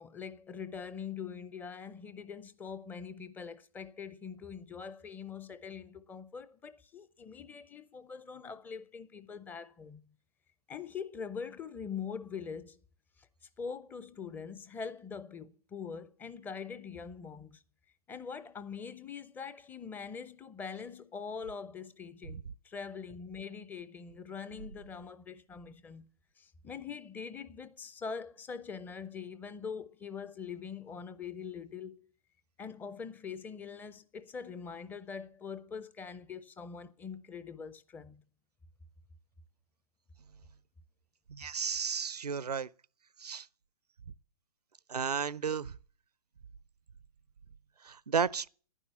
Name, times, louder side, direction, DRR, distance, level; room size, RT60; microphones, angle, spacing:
voice 1, 0.0-10.1 10.7-12.8 13.2-13.3 13.6-17.6 18.1-26.1 26.4-32.1 32.6-38.2, left 6 dB, 10° left, 0.5 m, -43 dB
voice 2, 41.3-42.7 43.2-43.5 44.9-45.7 47.8-48.5, right 6 dB, 85° right, 0.6 m, -33 dB
11.0 x 9.9 x 6.9 m
figure-of-eight pair, 130°, 20 cm